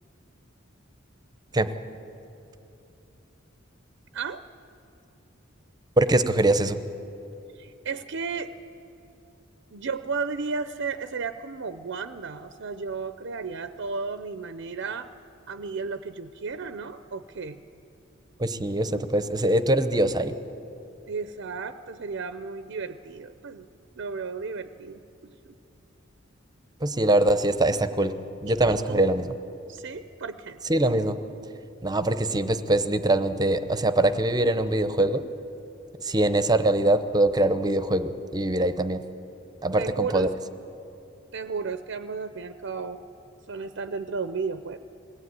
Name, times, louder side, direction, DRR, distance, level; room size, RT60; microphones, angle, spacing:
voice 1, 6.0-6.8 18.4-20.3 26.8-28.1 28.4-29.3 30.7-31.2 31.8-35.2 36.0-39.0 39.6-40.3, right 1 dB, 20° right, 11 dB, 0.8 m, -23 dB
voice 2, 7.5-8.5 9.7-15.1 15.5-17.6 18.9-19.1 21.1-23.7 24.0-25.5 28.5-28.6 28.9-29.0 29.7-30.6 39.8-40.3 41.3-43.0 43.5-44.8, right 5 dB, 60° right, 11 dB, 0.6 m, -34 dB
21.5 x 17.0 x 9.6 m, 2.9 s
head